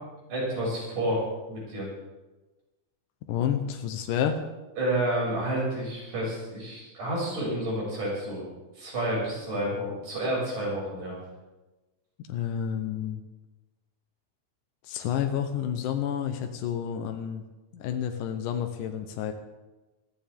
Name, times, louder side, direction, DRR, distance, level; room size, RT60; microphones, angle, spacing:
voice 1, 0.3-1.9 4.8-8.5 8.8-11.2, right 1 dB, 75° right, -5 dB, 8.2 m, -30 dB
voice 2, 3.3-4.4 12.3-13.2 14.8-17.4 17.7-19.3, left 9 dB, 80° left, 5 dB, 2.5 m, -30 dB
21.5 x 14.0 x 3.6 m, 1.1 s
omnidirectional pair, 3.7 m